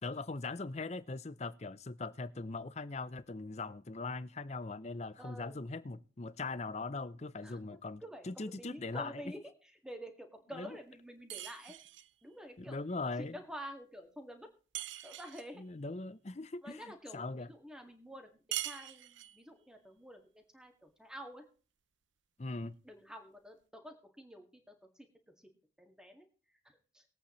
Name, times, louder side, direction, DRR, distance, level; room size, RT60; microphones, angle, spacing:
voice 1, 0.0-9.2 10.5-10.8 12.6-13.4 15.6-17.5 22.4-22.8, left 3 dB, 35° left, 0.6 m, -40 dB
voice 2, 5.1-5.6 7.4-11.8 12.2-14.5 14.8-15.6 16.6-18.3 18.6-21.4 22.8-25.1 25.8-26.3 26.6-27.0, equal, 5° right, 1.9 m, -49 dB
sound 1, 11.3-12.1 14.7-15.5 18.5-19.4, right 13 dB, 70° right, 0.6 m, -42 dB
21.5 x 8.6 x 3.1 m
head